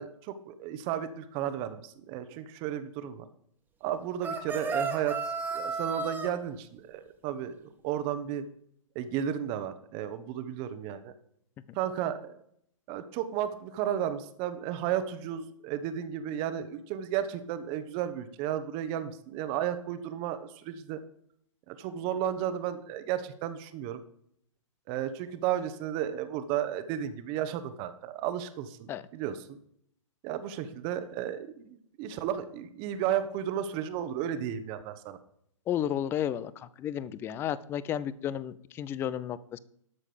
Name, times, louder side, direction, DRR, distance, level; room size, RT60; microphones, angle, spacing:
voice 1, 0.0-3.2 3.8-5.2 5.5-8.4 8.9-11.1 11.7-12.4 12.9-21.0 21.7-24.0 24.9-29.6 30.2-35.2, right 10 dB, 30° right, 11 dB, 1.0 m, -33 dB
sound 1, 4.2-6.3, right 4 dB, 10° right, 1.2 m, -32 dB
voice 2, 35.7-39.6, left 10 dB, 15° left, 18 dB, 0.4 m, -32 dB
12.5 x 6.4 x 5.1 m, 0.70 s
figure-of-eight pair, 125°, 17 cm